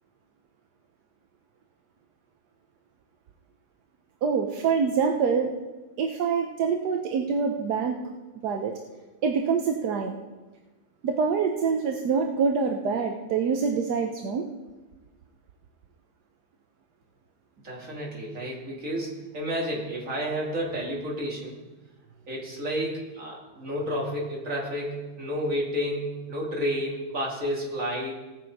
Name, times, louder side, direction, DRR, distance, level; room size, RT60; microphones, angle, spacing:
voice 1, 4.2-5.5 6.0-8.0 8.4-8.7 9.2-10.2 11.0-14.5, right 5 dB, 60° right, 3 dB, 1.1 m, -25 dB
voice 2, 17.6-21.6 22.3-28.1, equal, 35° right, -3 dB, 2.8 m, -31 dB
18.0 x 6.7 x 4.7 m, 1.2 s
omnidirectional pair, 2.4 m